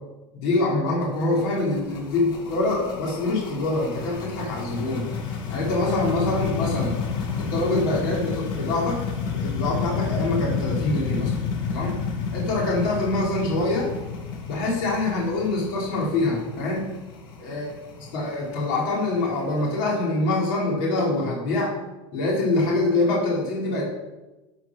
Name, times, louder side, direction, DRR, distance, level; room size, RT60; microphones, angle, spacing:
voice 1, 0.3-5.1 5.5-6.9 7.4-9.0 9.3-11.3 11.7-12.0 12.3-13.9 14.5-16.9 17.4-17.7 18.0-21.7 22.1-23.9, left 2 dB, 65° left, -4 dB, 4.0 m, -25 dB
sound 1, 1.0-19.8, left 5 dB, 45° left, 2.2 m, -30 dB
13.0 x 5.0 x 6.2 m, 1.1 s
supercardioid pair, 150°, 12 cm